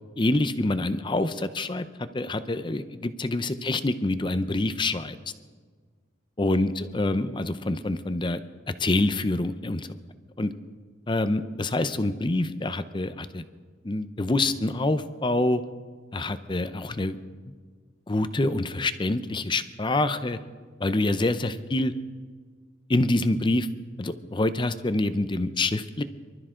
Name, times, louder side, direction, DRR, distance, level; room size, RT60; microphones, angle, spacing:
voice 1, 0.2-5.2 6.4-8.4 8.8-10.0 10.4-10.5 11.1-13.4 13.8-15.6 16.1-17.2 18.1-20.4 20.8-21.9 22.9-23.7 24.0-26.0, left 2 dB, 25° left, 12 dB, 0.6 m, -26 dB
25.0 x 13.0 x 3.8 m, 1.5 s
head